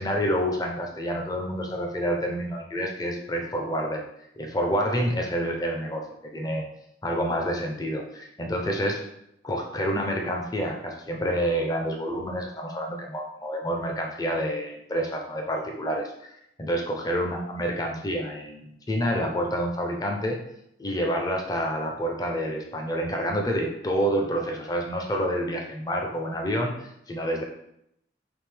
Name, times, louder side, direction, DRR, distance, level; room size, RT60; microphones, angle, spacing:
voice 1, 0.0-4.0 4.4-6.0 6.3-6.7 7.0-9.0 9.4-16.3 16.6-20.4 20.8-27.4, equal, 20° left, 1 dB, 0.4 m, -28 dB
3.5 x 2.7 x 3.3 m, 0.78 s
head